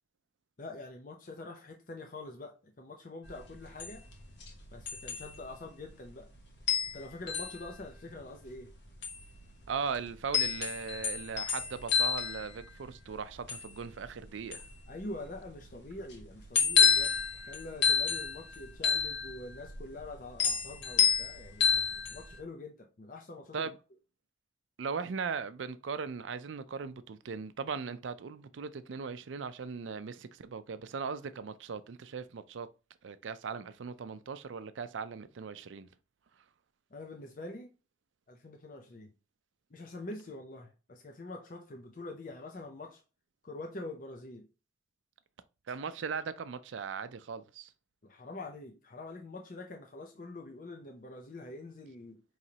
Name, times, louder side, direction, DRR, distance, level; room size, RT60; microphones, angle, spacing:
voice 1, 0.6-4.0 4.7-6.3 6.9-8.7 14.9-23.7 36.9-37.7 38.3-39.1 39.7-43.0 43.4-44.5 48.0-52.2, left 2 dB, 45° left, 0.6 m, -45 dB
sound 1, 3.2-22.4, left 6 dB, 75° left, 1.1 m, -31 dB
voice 2, 9.7-14.7 23.5-23.8 24.8-32.7 33.0-35.9 45.7-47.7, right 5 dB, 85° right, 0.5 m, -38 dB
4.9 x 3.1 x 2.8 m
head